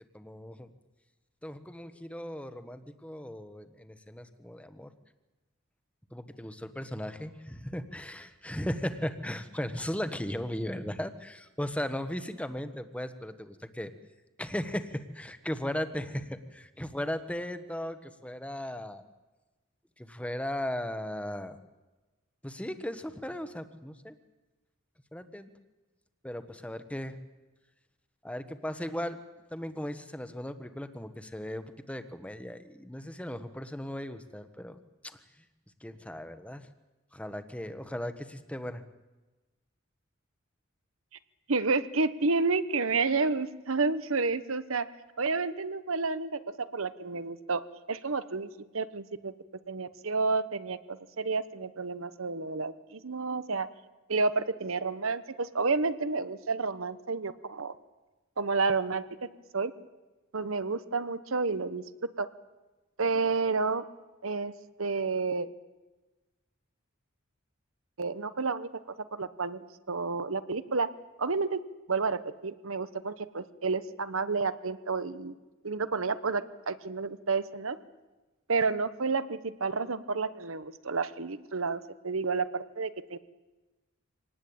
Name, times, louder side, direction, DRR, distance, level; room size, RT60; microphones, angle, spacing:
voice 1, 0.1-0.7 1.4-4.9 6.1-13.9 14.4-19.0 20.0-21.6 22.4-24.2 25.1-25.5 26.2-27.2 28.2-29.2 29.5-34.8 35.1-35.2 35.8-36.7 37.1-38.8, left 1 dB, 5° left, 10 dB, 1.3 m, -37 dB
voice 2, 41.5-44.9 45.2-47.6 47.9-49.3 49.7-53.7 54.1-57.7 58.4-59.0 59.5-59.7 60.3-62.3 63.0-63.8 64.2-64.5 64.8-65.5 68.0-68.7 69.1-70.9 71.2-71.6 71.9-75.3 75.6-77.8 78.5-83.2, right 4 dB, 75° right, 13 dB, 1.1 m, -30 dB
25.5 x 19.0 x 8.7 m, 1.2 s
head